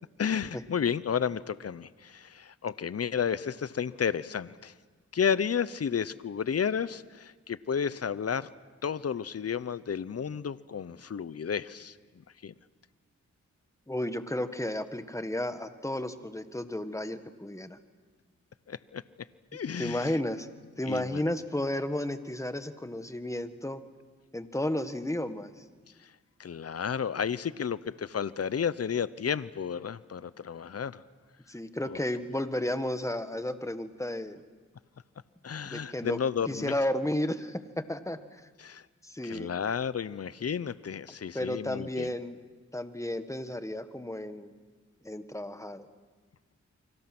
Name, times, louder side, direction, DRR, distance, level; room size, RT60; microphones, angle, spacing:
voice 1, 0.2-4.7 5.1-8.5 8.8-12.0 12.4-12.5 18.7-19.0 19.5-20.2 20.8-21.2 26.0-26.1 26.4-31.0 31.9-32.0 35.4-36.7 38.6-38.8 39.2-42.1, left 7 dB, 55° left, 17 dB, 0.8 m, -32 dB
voice 2, 13.9-17.8 19.8-20.5 20.8-23.8 24.3-25.5 31.5-34.4 35.6-36.2 36.5-38.4 39.0-39.5 41.3-42.4 42.7-44.5 45.0-45.9, left 1 dB, 10° left, 10 dB, 1.6 m, -33 dB
30.0 x 25.0 x 6.1 m, 1.4 s
cardioid pair, 60°, 29 cm